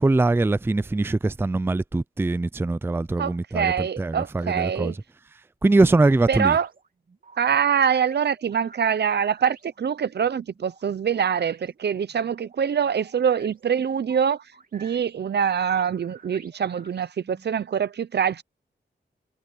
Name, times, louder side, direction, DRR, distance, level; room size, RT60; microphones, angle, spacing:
voice 1, 0.0-4.9 5.6-6.6, right 2 dB, 10° right, 0.4 m, -22 dB
voice 2, 3.2-5.0 6.3-6.7 7.4-14.4 14.7-18.4, right 7 dB, 65° right, 0.8 m, -24 dB
sound 1, 6.2-17.4, right 4 dB, 50° right, 2.8 m, -51 dB
wide cardioid pair, 110°, 18 cm